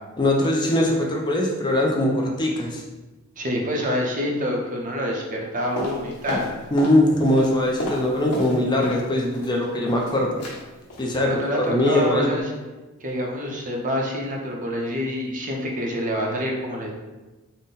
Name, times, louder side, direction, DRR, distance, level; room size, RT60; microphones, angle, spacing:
voice 1, 0.2-2.8 6.7-10.4 11.0-11.4 11.7-12.4, left 1 dB, 20° left, -1 dB, 0.4 m, -21 dB
voice 2, 3.4-6.5 11.2-12.5 13.0-16.9, equal, 35° right, -1 dB, 0.6 m, -27 dB
sound 1, 5.8-7.0 7.3-9.1 9.3-10.1 10.4-10.6 10.9-11.1 11.4-11.7 11.9-12.0, left 1 dB, 80° left, 1.1 m, -32 dB
3.9 x 2.1 x 3.9 m, 1.2 s
head